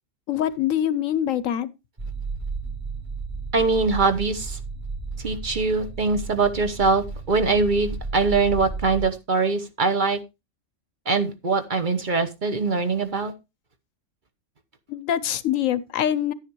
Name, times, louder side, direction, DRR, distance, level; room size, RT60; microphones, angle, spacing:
voice 1, 0.3-1.7 14.9-16.3, left 10 dB, 90° left, 1.2 m, -24 dB
sound 1, 2.0-9.1, right 4 dB, 20° right, 1.2 m, -34 dB
voice 2, 3.5-4.6 5.2-10.2 11.1-13.3, right 4 dB, 40° right, 1.0 m, -22 dB
11.0 x 9.7 x 3.0 m
omnidirectional pair, 1.3 m